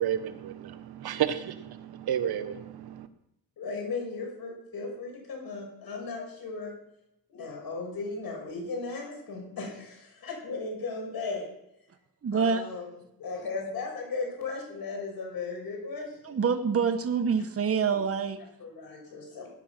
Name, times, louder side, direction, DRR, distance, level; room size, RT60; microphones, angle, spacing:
voice 1, 0.0-3.1, right 10 dB, 85° right, 9 dB, 1.3 m, -31 dB
voice 2, 3.6-6.7 7.3-11.4 12.3-12.9 13.2-16.4 17.9-18.0 18.6-19.5, left 4 dB, 70° left, 1 dB, 6.4 m, -36 dB
voice 3, 12.2-12.6 16.2-18.4, right 6 dB, 40° right, 6 dB, 1.2 m, -26 dB
18.0 x 10.5 x 6.0 m, 0.83 s
cardioid pair, 105°, 37 cm